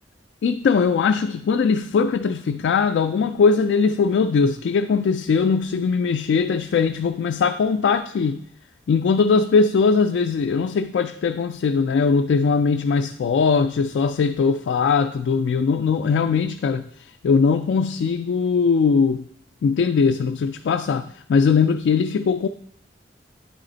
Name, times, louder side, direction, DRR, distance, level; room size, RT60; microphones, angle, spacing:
voice 1, 0.4-8.4 8.9-16.8 17.2-19.2 19.6-22.5, left 5 dB, 70° left, 7 dB, 0.3 m, -20 dB
9.4 x 4.1 x 3.8 m, 0.65 s
head